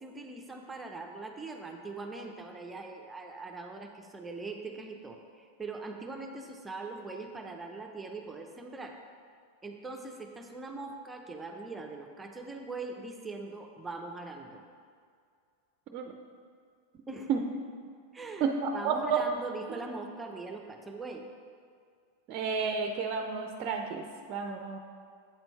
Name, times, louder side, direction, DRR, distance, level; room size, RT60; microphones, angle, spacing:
voice 1, 0.0-9.0 9.6-14.6 17.1-17.3 18.1-18.5 18.7-21.2, right 3 dB, 15° right, 3 dB, 0.8 m, -41 dB
voice 2, 18.4-19.2 22.3-24.0 24.3-24.8, right 5 dB, 45° right, 4 dB, 0.6 m, -31 dB
8.4 x 4.4 x 5.4 m, 2.2 s
hypercardioid pair, 95°, 0 cm